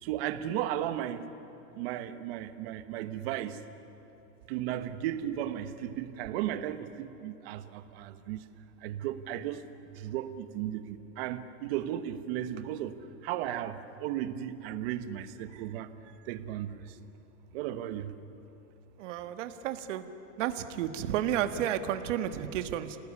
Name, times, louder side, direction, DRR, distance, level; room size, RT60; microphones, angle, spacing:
voice 1, 0.0-1.3 1.7-3.6 4.5-8.4 8.8-9.6 9.9-15.9 16.3-16.8 17.5-18.1, right 11 dB, 45° right, 10 dB, 1.4 m, -35 dB
voice 2, 19.0-20.0 20.4-23.0, right 10 dB, 60° right, 8 dB, 1.7 m, -32 dB
29.0 x 19.0 x 9.8 m, 3.0 s
supercardioid pair, 165°, 41 cm